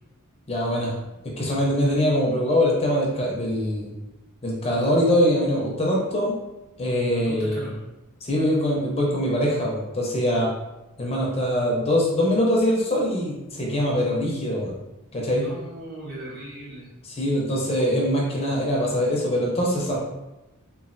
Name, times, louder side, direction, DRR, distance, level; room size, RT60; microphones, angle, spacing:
voice 1, 0.5-0.9 1.4-3.9 4.4-6.4 6.8-7.7 8.2-10.5 11.0-14.8 15.1-15.4 17.0-20.0, equal, 30° left, -3 dB, 0.5 m, -23 dB
voice 2, 7.1-7.8 15.3-16.9, right 1 dB, 50° right, -6 dB, 1.0 m, -38 dB
3.1 x 2.3 x 2.5 m, 1.0 s
head